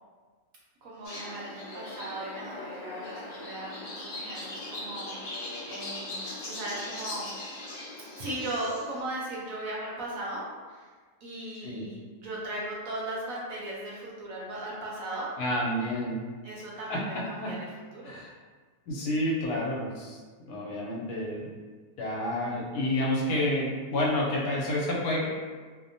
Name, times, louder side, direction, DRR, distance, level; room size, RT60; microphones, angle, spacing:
voice 1, 0.8-7.6 8.2-10.4 10.7-10.9 11.2-15.3 16.4-17.2 17.4-17.7 17.9-18.2, right 1 dB, 70° right, -5 dB, 0.9 m, -37 dB
sound 1, 1.0-9.0, left 2 dB, 50° left, 0.8 m, -39 dB
voice 2, 15.4-16.2 16.9-17.5 18.0-18.3 18.9-20.2 20.5-21.5 22.0-25.3, left 1 dB, 85° left, -3 dB, 1.2 m, -29 dB
2.7 x 2.1 x 2.6 m, 1.5 s
omnidirectional pair, 1.7 m